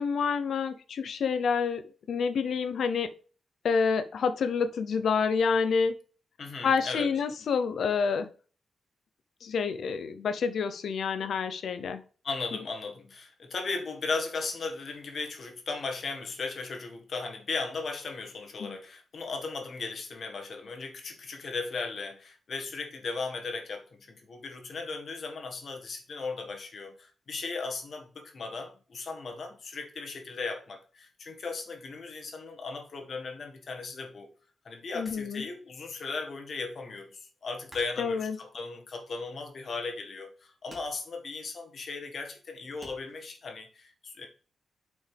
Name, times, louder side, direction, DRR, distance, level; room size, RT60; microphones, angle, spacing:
voice 1, 0.0-3.1 3.6-5.9 6.6-8.3 9.4-12.0 18.6-18.8 35.0-35.4 38.0-38.4, left 5 dB, 70° left, 0.6 m, -28 dB
voice 2, 6.4-7.1 12.2-34.3 34.6-44.2, left 4 dB, 50° left, 1.6 m, -37 dB
sound 1, 35.1-36.1 36.4-39.6 40.0-40.4 40.6-43.3, right 1 dB, 15° right, 2.7 m, -54 dB
8.3 x 5.2 x 3.4 m
wide cardioid pair, 165°, 0 cm